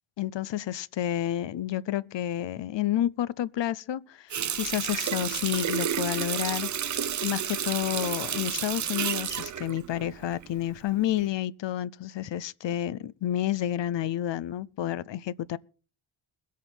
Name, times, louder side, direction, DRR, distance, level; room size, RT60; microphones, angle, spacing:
voice 1, 0.2-6.7 7.2-15.6, left 12 dB, 60° left, 0.6 m, -30 dB
Water tap faucet, 4.3-10.7 11.1-11.2, right 9 dB, 35° right, 0.5 m, -31 dB
21.0 x 8.4 x 4.4 m
wide cardioid pair, 115°, 50 cm